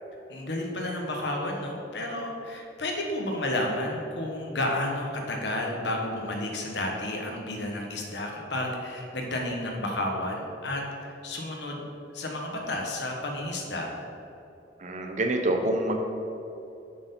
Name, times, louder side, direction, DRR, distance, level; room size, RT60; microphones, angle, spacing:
voice 1, 0.3-11.8 12.1-13.9, left 1 dB, 80° left, 1 dB, 1.2 m, -31 dB
voice 2, 14.8-16.0, right 1 dB, 45° right, 3 dB, 0.7 m, -26 dB
7.1 x 4.6 x 5.4 m, 2.8 s
head